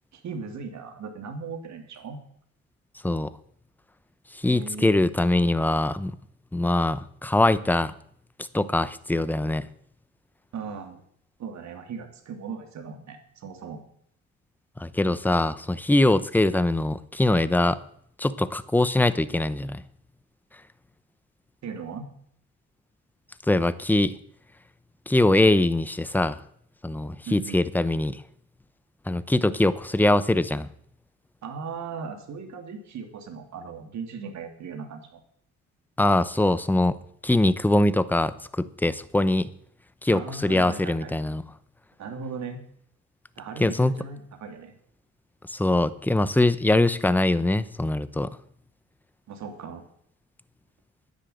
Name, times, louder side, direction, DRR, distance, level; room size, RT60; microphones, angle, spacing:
voice 1, 0.1-2.2 4.4-5.1 10.5-11.0 11.4-13.8 21.6-22.1 27.3-27.7 31.4-35.2 40.1-41.2 42.0-42.6 43.4-44.8 49.3-49.8, right 5 dB, 65° right, 5 dB, 2.8 m, -38 dB
voice 2, 4.3-6.1 6.5-7.9 8.5-9.7 14.8-17.8 18.2-19.8 23.5-24.2 25.1-26.4 26.8-28.2 29.1-30.7 36.0-37.0 37.2-39.5 40.0-41.4 43.6-43.9 45.5-48.4, left 2 dB, 5° left, 15 dB, 0.8 m, -22 dB
10.5 x 9.9 x 7.8 m, 0.65 s
cardioid pair, 90°, 30 cm